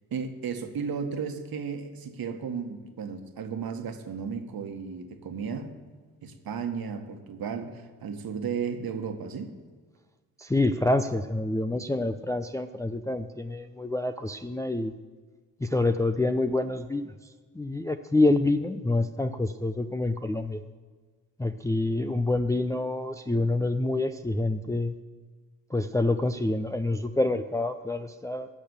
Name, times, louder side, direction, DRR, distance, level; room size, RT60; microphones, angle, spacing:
voice 1, 0.1-5.7 6.2-9.5, right 6 dB, 45° right, 6 dB, 1.7 m, -34 dB
voice 2, 10.4-14.9 15.6-17.1 17.5-20.6 21.4-24.9 25.7-28.5, left 2 dB, 5° left, 7 dB, 0.6 m, -27 dB
17.5 x 6.6 x 7.1 m, 1.4 s
figure-of-eight pair, 40°, 49 cm